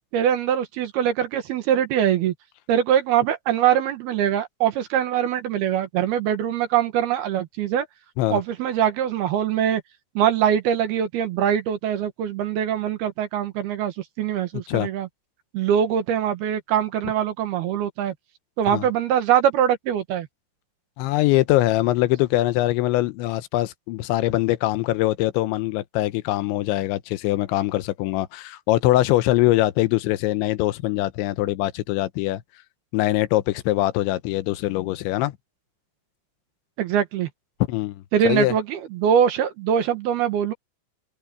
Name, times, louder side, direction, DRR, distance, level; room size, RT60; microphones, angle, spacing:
voice 1, 0.1-2.3 2.7-7.9 8.3-9.8 10.2-15.1 15.5-18.1 18.6-20.3 36.8-37.3 38.1-40.5, right 9 dB, 70° right, 3.0 m, -22 dB
voice 2, 21.0-32.4 32.9-35.4 37.7-38.5, left 16 dB, 80° left, 3.2 m, -22 dB
omnidirectional pair, 5.2 m